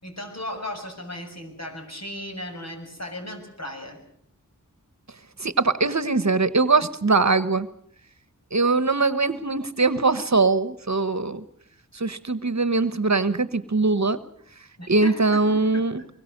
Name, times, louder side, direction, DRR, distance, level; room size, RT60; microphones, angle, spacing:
voice 1, 0.0-4.0 14.8-16.1, left 1 dB, 50° left, 3 dB, 6.7 m, -36 dB
voice 2, 5.4-7.7 8.5-11.4 11.9-14.2 14.9-16.0, right 3 dB, 55° right, 14 dB, 1.2 m, -22 dB
23.5 x 22.0 x 6.7 m, 0.67 s
wide cardioid pair, 45°, 33 cm